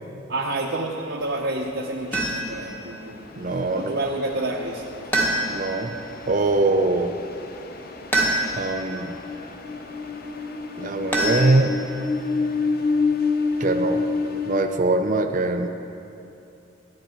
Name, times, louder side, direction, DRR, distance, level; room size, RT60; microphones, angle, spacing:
voice 1, 0.3-3.3 3.7-4.9, right 2 dB, 65° right, -2 dB, 0.9 m, -29 dB
sound 1, 1.2-14.6, left 4 dB, 50° left, 0.7 m, -29 dB
sound 2, 2.1-2.7 5.1-5.8 8.1-8.8 11.1-12.0, right 1 dB, 10° left, 1.3 m, -25 dB
voice 2, 3.4-3.9 5.5-5.9 6.3-7.1 8.6-9.1 10.8-11.8 13.6-14.0 14.5-15.7, right 2 dB, 40° right, 5 dB, 0.5 m, -22 dB
14.5 x 10.5 x 4.5 m, 2.7 s
head